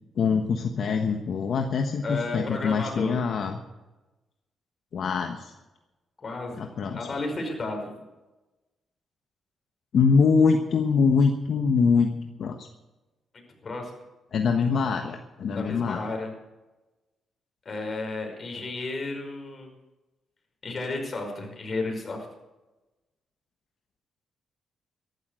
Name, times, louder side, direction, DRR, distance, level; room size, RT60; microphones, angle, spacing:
voice 1, 0.2-3.6 4.9-5.5 6.6-7.0 9.9-12.1 12.4-12.7 14.3-16.0, left 5 dB, 65° left, 4 dB, 1.3 m, -23 dB
voice 2, 2.0-3.2 6.2-8.0 13.6-13.9 15.5-16.3 17.7-19.7 20.6-22.3, left 3 dB, 40° left, 3 dB, 5.4 m, -33 dB
14.0 x 12.0 x 6.5 m, 1.1 s
cardioid pair, 85°, 0 cm